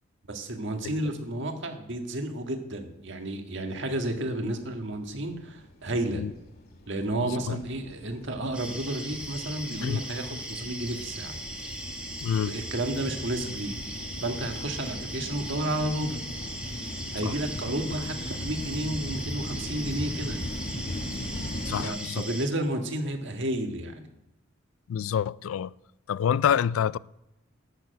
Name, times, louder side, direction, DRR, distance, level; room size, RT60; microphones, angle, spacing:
voice 1, 0.3-6.2 6.9-11.4 12.4-13.7 14.2-16.2 17.1-20.4 21.8-24.1, right 1 dB, 65° right, 1.7 m, -31 dB
sound 1, 4.1-21.9, left 1 dB, 50° left, 2.0 m, -39 dB
sound 2, 8.5-22.5, right 1 dB, 5° right, 1.4 m, -39 dB
voice 2, 12.2-12.5 17.2-17.3 21.7-22.2 24.9-25.7 26.1-27.0, left 8 dB, 85° left, 0.3 m, -27 dB
12.0 x 6.7 x 7.9 m
head